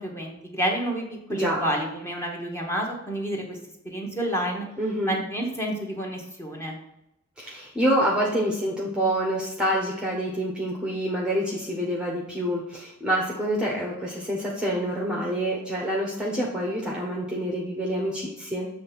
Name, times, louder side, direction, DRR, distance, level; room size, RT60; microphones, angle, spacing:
voice 1, 0.0-3.6 3.8-4.7 5.0-6.7, right 1 dB, 10° left, 0 dB, 1.5 m, -29 dB
voice 2, 1.3-1.6 4.8-5.2 7.4-18.7, equal, 5° right, -3 dB, 1.1 m, -27 dB
7.7 x 3.4 x 6.0 m, 0.87 s
head